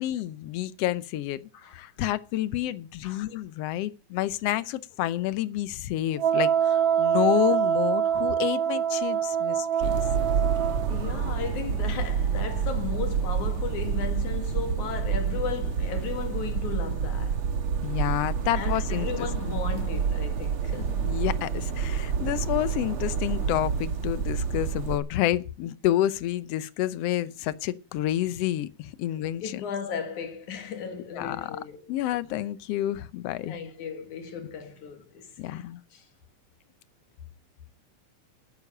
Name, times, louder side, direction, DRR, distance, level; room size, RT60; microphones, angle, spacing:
voice 1, 0.0-1.4 1.7-10.0 17.8-19.6 21.0-29.6 31.1-31.5 31.9-33.6 35.4-35.8, left 13 dB, 70° left, 1.7 m, -29 dB
Wind instrument woodwind instrument, 6.2-10.9, right 8 dB, 70° right, 3.8 m, -25 dB
sound 1, 9.8-25.0, right 6 dB, 55° right, 2.1 m, -28 dB
voice 2, 10.6-17.4 18.6-21.1 29.4-31.9 33.5-35.6 35.9-36.1, left 7 dB, 85° left, 3.3 m, -36 dB
12.0 x 9.8 x 6.6 m
omnidirectional pair, 3.3 m